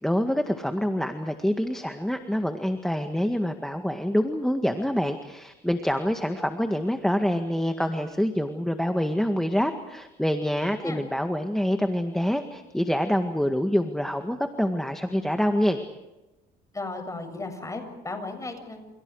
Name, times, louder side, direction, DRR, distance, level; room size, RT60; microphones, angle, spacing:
voice 1, 0.0-15.8, equal, 5° left, 6 dB, 1.9 m, -26 dB
voice 2, 16.7-18.9, left 3 dB, 20° left, 6 dB, 7.5 m, -35 dB
29.5 x 29.5 x 4.9 m, 1.0 s
cardioid pair, 110°, 17 cm